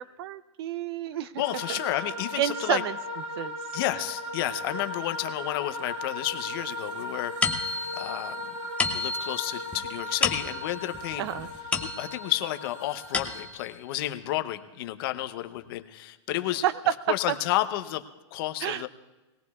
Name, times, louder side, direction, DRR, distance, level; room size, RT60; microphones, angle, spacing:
voice 1, 0.0-1.3 1.7-1.8 2.4-3.0 3.4-3.6 11.2-11.5 16.6-17.4 18.6-18.9, right 11 dB, 55° right, 16 dB, 0.6 m, -29 dB
voice 2, 1.4-2.8 3.7-8.5 8.9-11.2 11.8-16.6 17.1-18.0 18.3-18.9, left 15 dB, 50° left, 9 dB, 0.8 m, -31 dB
sound 1, 1.4-13.5, left 1 dB, 90° right, 2.6 m, -37 dB
sound 2, 7.4-12.4 12.8-13.7, left 4 dB, 10° left, 0.7 m, -32 dB
21.0 x 17.0 x 2.4 m, 1.1 s
hypercardioid pair, 145°, 16 cm